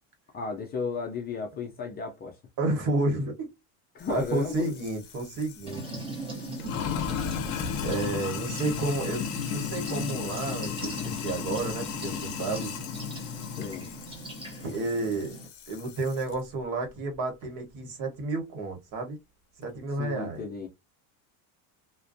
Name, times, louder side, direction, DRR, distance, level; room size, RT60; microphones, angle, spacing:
voice 1, 0.3-2.4 3.9-4.7 13.6-13.9 20.0-20.7, left 5 dB, 25° left, 0.4 m, -34 dB
voice 2, 2.6-3.5 4.1-6.0 7.8-9.2 9.5-12.7 14.6-15.3 15.7-19.2 19.6-20.4, right 2 dB, 55° right, 1.1 m, -31 dB
Sink (filling or washing), 4.0-16.3, left 8 dB, 50° left, 0.7 m, -35 dB
sound 1, 5.7-15.5, right 2 dB, 15° right, 0.7 m, -40 dB
2.5 x 2.2 x 2.5 m
cardioid pair, 140°, 39 cm